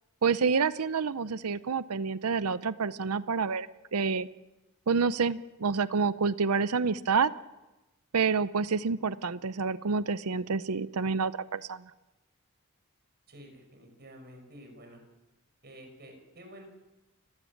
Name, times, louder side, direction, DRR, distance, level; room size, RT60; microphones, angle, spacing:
voice 1, 0.2-4.3 4.9-7.3 8.1-11.8, right 5 dB, 90° right, 15 dB, 0.7 m, -28 dB
voice 2, 13.3-15.0 15.6-16.7, equal, 50° right, 4 dB, 5.9 m, -50 dB
29.0 x 16.5 x 7.4 m, 1.0 s
head